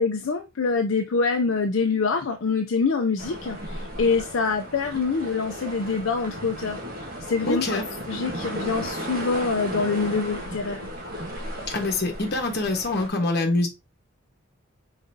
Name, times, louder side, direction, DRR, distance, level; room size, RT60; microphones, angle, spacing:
voice 1, 0.0-7.8 8.1-10.8, left 4 dB, 65° left, 0.5 m, -25 dB
sound 1, 3.2-13.1, equal, 45° right, 1.4 m, -35 dB
voice 2, 7.4-7.9 11.7-13.7, left 2 dB, 50° left, 1.2 m, -25 dB
5.1 x 4.0 x 2.6 m
head